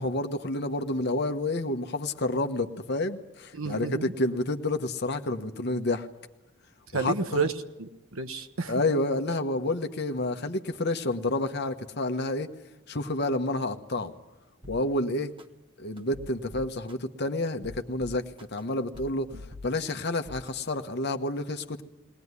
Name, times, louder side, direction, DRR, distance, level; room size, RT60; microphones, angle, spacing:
voice 1, 0.0-6.1 6.9-7.4 8.7-12.5 12.9-14.1 14.7-15.3 15.8-18.2 18.5-19.3 19.6-21.8, left 2 dB, 55° left, 7 dB, 1.2 m, -29 dB
voice 2, 3.5-4.1 6.9-8.8 19.3-19.4, right 4 dB, 85° right, 7 dB, 1.4 m, -31 dB
sound 1, 14.6-14.8 15.4-15.5 16.0-16.9 17.5-18.6 18.9-19.9 20.2-20.5, left 2 dB, 25° right, 1.2 m, -43 dB
21.0 x 18.5 x 9.7 m, 0.96 s
head